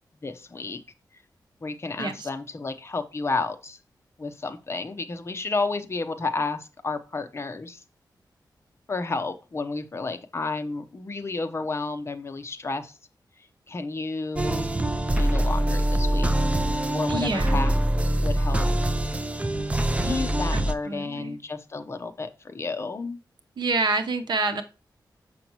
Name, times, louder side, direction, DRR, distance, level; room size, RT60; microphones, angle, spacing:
voice 1, 0.2-0.8 1.6-3.8 4.2-7.8 8.9-13.0 13.7-14.7 15.2-16.3 16.9-17.7 18.2-18.7 20.0-23.2, left 3 dB, 35° left, 9 dB, 0.7 m, -31 dB
voice 2, 2.0-2.3 17.1-17.6 20.5-21.4 23.6-24.6, right 3 dB, 80° right, 7 dB, 0.9 m, -27 dB
sound 1, 14.4-20.7, right 1 dB, 15° right, 0.5 m, -24 dB
6.8 x 5.7 x 2.9 m, 0.33 s
wide cardioid pair, 140°, 8 cm